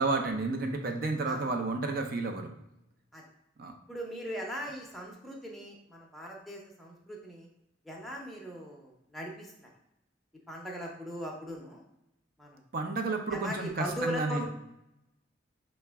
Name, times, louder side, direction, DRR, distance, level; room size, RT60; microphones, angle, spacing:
voice 1, 0.0-2.5 3.6-3.7 12.7-14.4, right 3 dB, 50° right, 4 dB, 0.5 m, -31 dB
voice 2, 3.9-7.5 7.8-9.7 10.5-11.8 12.4-12.6 13.3-14.5, equal, ahead, -3 dB, 0.6 m, -39 dB
5.6 x 2.1 x 3.4 m, 0.85 s
head